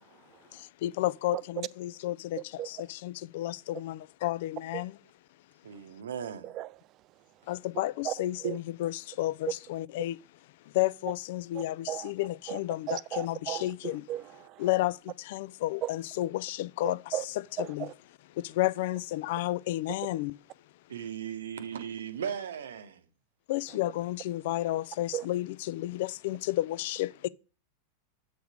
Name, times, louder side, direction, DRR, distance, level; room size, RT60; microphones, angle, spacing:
voice 1, 0.5-4.9 7.5-10.2 10.6-14.0 14.6-17.9 18.3-20.4 23.5-27.3, left 16 dB, 50° left, 0.3 m, -32 dB
voice 2, 5.6-6.6 20.9-23.1, right 8 dB, 65° right, 0.8 m, -37 dB
voice 3, 12.9-14.6 15.8-15.9 17.1-17.2 17.6-17.9 25.1-25.3, right 13 dB, 35° right, 0.4 m, -35 dB
7.9 x 3.4 x 6.1 m
figure-of-eight pair, 90°, 0 cm